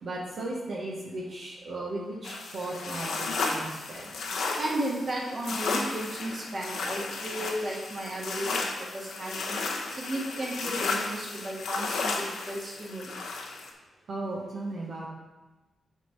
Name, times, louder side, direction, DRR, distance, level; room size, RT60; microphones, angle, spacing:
voice 1, 0.0-4.1 14.1-15.1, right 2 dB, 70° right, -4 dB, 1.0 m, -36 dB
sound 1, 2.2-13.7, left 3 dB, 75° left, 0.8 m, -33 dB
voice 2, 4.6-9.6 9.9-13.2, right 1 dB, 45° right, -2 dB, 1.5 m, -34 dB
6.3 x 3.7 x 5.5 m, 1.1 s
supercardioid pair, 45°, 0 cm